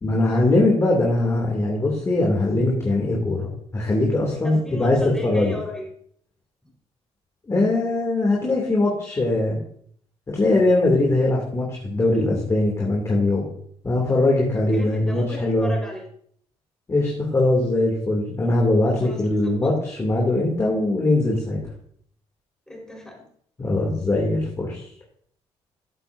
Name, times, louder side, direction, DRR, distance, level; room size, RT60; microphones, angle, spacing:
voice 1, 0.0-5.0 5.2-5.6 7.5-9.6 10.3-13.5 13.8-15.7 16.9-21.6 23.6-24.9, left 2 dB, 25° left, -2 dB, 2.7 m, -21 dB
voice 2, 4.4-5.9 14.5-16.1 19.0-19.7 22.7-23.3, left 1 dB, 5° left, -1 dB, 4.4 m, -36 dB
13.5 x 8.4 x 2.7 m, 0.64 s
cardioid pair, 100°, 11 cm